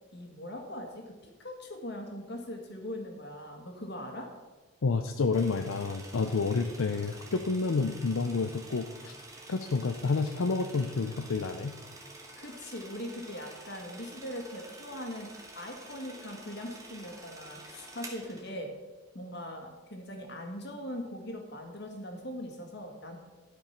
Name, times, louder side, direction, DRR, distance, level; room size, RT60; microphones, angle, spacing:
voice 1, 0.1-1.1 1.4-4.3 12.4-15.3 15.6-18.7 19.1-23.2, left 1 dB, 50° left, 3 dB, 1.8 m, -41 dB
voice 2, 4.8-9.1 9.5-11.8, left 4 dB, 75° left, 6 dB, 0.5 m, -29 dB
sound 1, 5.3-18.5, right 2 dB, 15° right, 1.3 m, -49 dB
12.5 x 5.2 x 5.8 m, 1.2 s
head